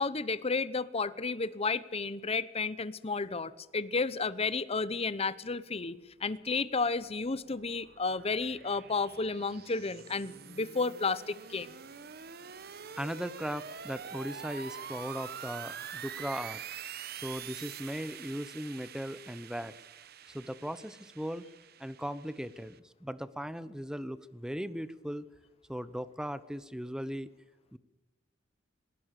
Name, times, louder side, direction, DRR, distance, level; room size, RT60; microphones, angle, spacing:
voice 1, 0.0-11.7, left 4 dB, 35° left, 16 dB, 0.9 m, -32 dB
sound 1, 6.7-22.8, right 8 dB, 55° right, 1.0 m, -46 dB
voice 2, 13.0-16.6 17.1-19.7 20.3-21.5 21.8-25.3 25.7-27.3 27.7-27.8, equal, 5° right, 15 dB, 0.9 m, -38 dB
20.5 x 18.5 x 6.7 m, 1.2 s
head